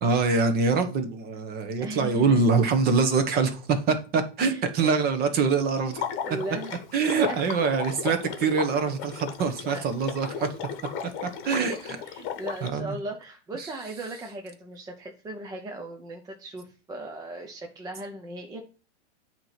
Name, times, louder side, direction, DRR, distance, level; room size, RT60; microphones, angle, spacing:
voice 1, 0.0-6.0 6.9-10.5 11.4-11.7 12.6-12.9 13.6-13.7, right 4 dB, 25° right, 1.0 m, -24 dB
voice 2, 1.8-2.4 4.5-4.9 6.2-6.8 7.3-7.4 9.7-9.8 11.5-11.8 12.0-18.6, right 2 dB, 10° right, 0.6 m, -37 dB
Water / Liquid, 5.9-12.7, left 8 dB, 35° left, 1.2 m, -35 dB
8.7 x 3.1 x 5.7 m
hypercardioid pair, 135°, 35 cm